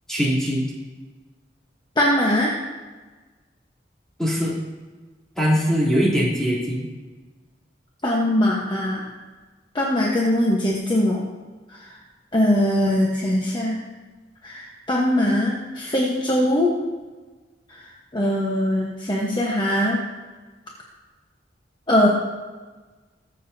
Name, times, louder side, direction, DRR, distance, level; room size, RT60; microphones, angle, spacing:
voice 1, 0.1-0.6 4.2-4.5 5.3-6.9, equal, 5° left, -8 dB, 3.3 m, -21 dB
voice 2, 2.0-2.6 8.0-9.0 9.7-11.2 11.7-11.9 12.3-13.8 14.4-16.7 17.7-20.0 21.9-22.1, left 1 dB, 25° left, -3 dB, 1.2 m, -21 dB
21.5 x 7.4 x 2.8 m, 1.3 s
head